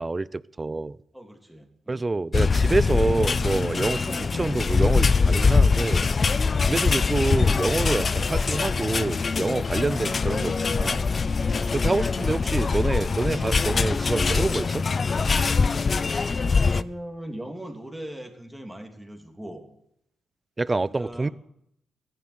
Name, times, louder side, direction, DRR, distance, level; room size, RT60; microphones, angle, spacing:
voice 1, 0.0-1.0 1.9-6.1 6.6-11.0 11.7-14.8 20.6-21.3, right 3 dB, 25° right, 0.5 m, -27 dB
voice 2, 1.1-2.1 11.4-11.7 16.2-19.7 20.9-21.3, right 1 dB, 5° right, 3.0 m, -40 dB
sound 1, 2.3-16.8, left 4 dB, 40° left, 0.5 m, -23 dB
15.0 x 11.0 x 8.0 m
cardioid pair, 75°, 0 cm